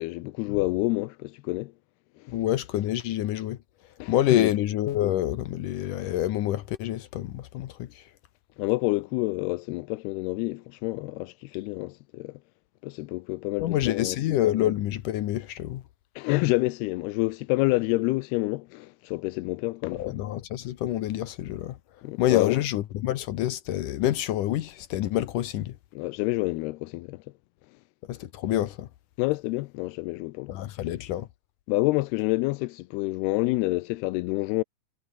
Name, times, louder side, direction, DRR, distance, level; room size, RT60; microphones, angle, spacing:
voice 1, 0.0-1.7 2.2-2.4 4.0-4.5 8.6-12.4 12.8-14.2 16.2-20.2 22.0-22.6 25.9-27.2 29.2-30.6 31.7-34.6, left 22 dB, 85° left, 2.6 m, -28 dB
voice 2, 2.3-3.6 4.1-7.9 13.6-15.8 20.0-21.8 22.2-25.7 28.1-28.9 30.5-31.3, left 13 dB, 70° left, 2.2 m, -27 dB
omnidirectional pair, 4.6 m